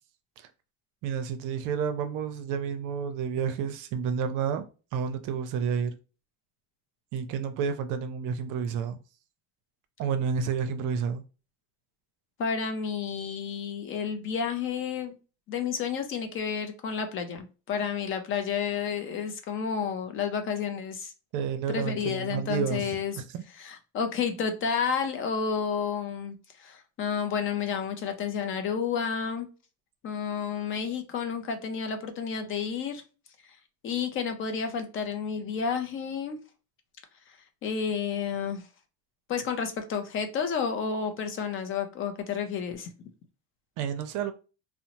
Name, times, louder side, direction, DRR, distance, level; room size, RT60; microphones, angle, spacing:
voice 1, 1.0-4.6 4.9-5.9 7.1-9.0 10.0-11.2 21.3-23.4 43.8-44.3, right 6 dB, 55° right, 0.5 m, -30 dB
voice 2, 12.4-15.2 15.5-21.1 21.7-23.2 23.6-29.5 30.0-33.0 33.4-33.6 33.8-36.4 37.6-38.6 39.3-42.9, left 6 dB, 35° left, 0.4 m, -31 dB
2.7 x 2.0 x 2.8 m
cardioid pair, 130°, 37 cm